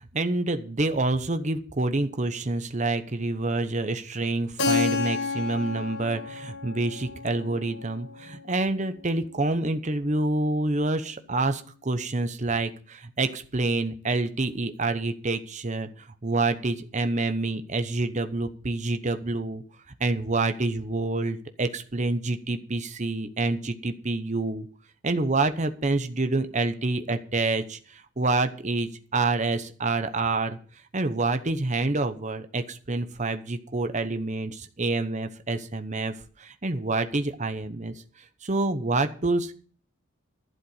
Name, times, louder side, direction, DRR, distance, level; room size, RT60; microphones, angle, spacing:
voice 1, 0.0-19.6 20.0-24.7 25.0-30.6 30.9-37.9 38.4-39.5, right 2 dB, 35° right, 8 dB, 0.9 m, -27 dB
Keyboard (musical), 4.6-9.1, left 5 dB, 55° left, 1.5 m, -31 dB
11.5 x 7.7 x 7.8 m, 0.42 s
head